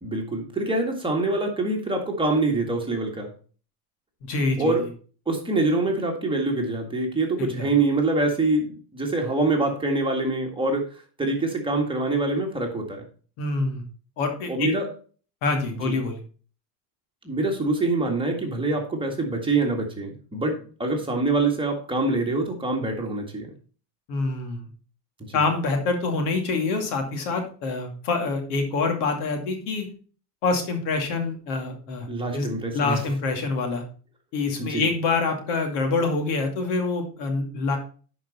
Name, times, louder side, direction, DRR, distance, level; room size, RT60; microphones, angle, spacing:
voice 1, 0.0-3.3 4.6-4.8 5.3-10.8 11.2-13.0 14.5-14.9 15.8-16.0 17.2-23.5 25.2-25.3 32.1-33.0 34.6-34.9, right 2 dB, 10° right, 1 dB, 1.9 m, -25 dB
voice 2, 4.2-4.8 7.4-7.7 13.4-13.8 14.2-14.7 15.4-16.2 24.1-24.6 25.3-29.9 30.4-33.8 34.3-37.8, left 3 dB, 70° left, 4 dB, 2.4 m, -26 dB
10.5 x 5.0 x 4.1 m, 0.40 s
supercardioid pair, 125°, 47 cm